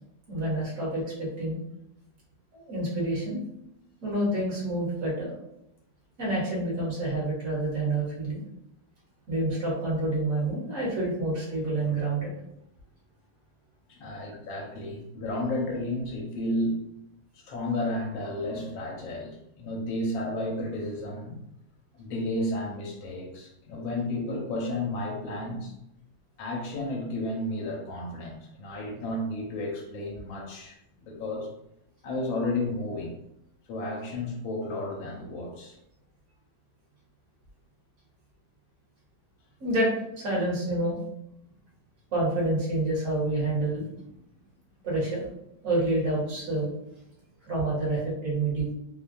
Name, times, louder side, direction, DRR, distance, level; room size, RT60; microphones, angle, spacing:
voice 1, 0.3-1.6 2.5-3.4 4.0-5.3 6.2-8.4 9.3-12.3 39.6-39.9 40.2-41.0 42.1-43.9 44.8-45.2 45.6-46.7 47.5-48.7, right 2 dB, 50° right, -5 dB, 1.2 m, -28 dB
voice 2, 13.9-16.8 17.4-21.4 21.9-25.7 26.4-31.5 32.0-33.2 33.7-35.8, left 1 dB, 85° left, -2 dB, 1.4 m, -32 dB
3.3 x 2.1 x 2.5 m, 0.82 s
omnidirectional pair, 2.1 m